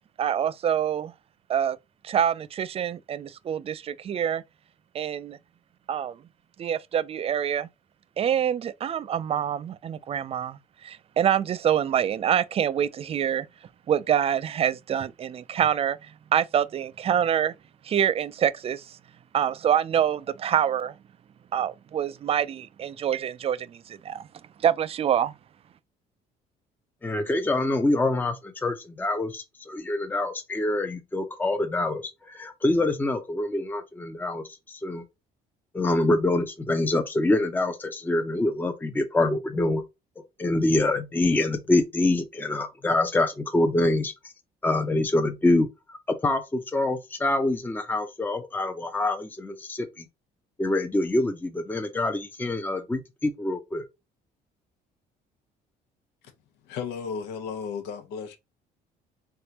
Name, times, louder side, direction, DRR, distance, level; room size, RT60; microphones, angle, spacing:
voice 1, 0.2-1.1 1.5-1.8 2.0-4.4 4.9-5.4 5.9-6.2 6.6-7.7 8.2-13.5 13.9-17.5 17.8-19.0 19.3-20.9 21.5-24.3 24.6-25.3, right 9 dB, 35° right, 0.4 m, -26 dB
voice 2, 27.0-35.0 35.7-39.8 40.2-44.1 44.6-46.0 46.2-50.1 50.6-53.9, left 2 dB, 10° left, 0.7 m, -25 dB
voice 3, 56.6-58.4, left 6 dB, 85° left, 1.1 m, -34 dB
3.8 x 3.5 x 2.8 m
cardioid pair, 110°, 17 cm